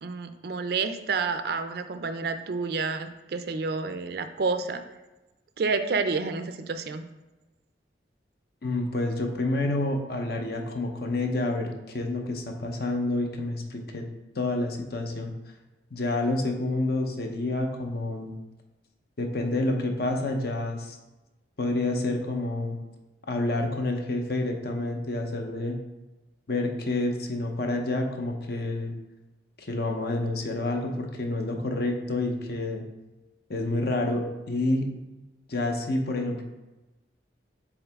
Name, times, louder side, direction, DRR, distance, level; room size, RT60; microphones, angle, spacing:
voice 1, 0.0-4.8 5.6-7.0, right 4 dB, 60° right, 9 dB, 0.4 m, -29 dB
voice 2, 8.6-14.1 14.3-15.3 15.9-18.3 19.2-21.0 21.6-22.8 23.3-25.8 26.5-28.9 29.6-32.8 33.5-34.9 35.5-36.4, left 2 dB, 60° left, 3 dB, 0.8 m, -28 dB
7.2 x 3.8 x 3.5 m, 1.1 s
head